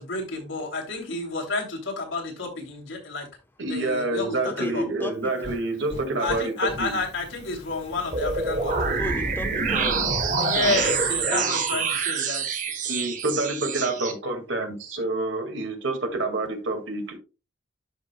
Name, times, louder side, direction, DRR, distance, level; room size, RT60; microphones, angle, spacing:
voice 1, 0.0-3.3 3.7-4.9 6.2-9.2 10.4-12.6, left 3 dB, 80° left, 2.8 m, -30 dB
voice 2, 3.6-7.0 12.9-17.2, right 2 dB, 80° right, 2.1 m, -28 dB
voice 3, 4.4-5.3 9.0-11.8, left 1 dB, 10° left, 0.9 m, -35 dB
Fire, 5.1-11.3, equal, 35° left, 4.8 m, -42 dB
sound 1, 8.1-14.1, right 4 dB, 40° right, 1.2 m, -26 dB
12.5 x 5.1 x 2.2 m
head